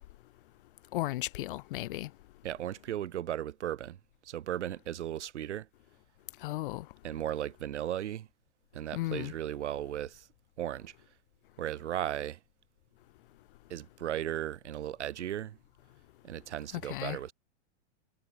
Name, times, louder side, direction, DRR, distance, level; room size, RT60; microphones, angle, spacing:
voice 1, 0.9-2.1 6.4-6.9 8.9-9.3 16.7-17.2, left 17 dB, 50° left, 0.5 m, -35 dB
voice 2, 2.4-4.0 4.2-5.7 7.0-8.3 8.7-10.3 10.6-10.9 11.6-12.4 13.7-15.6 16.2-17.3, right 11 dB, 75° right, 3.7 m, -36 dB
hypercardioid pair, 150°, 35 cm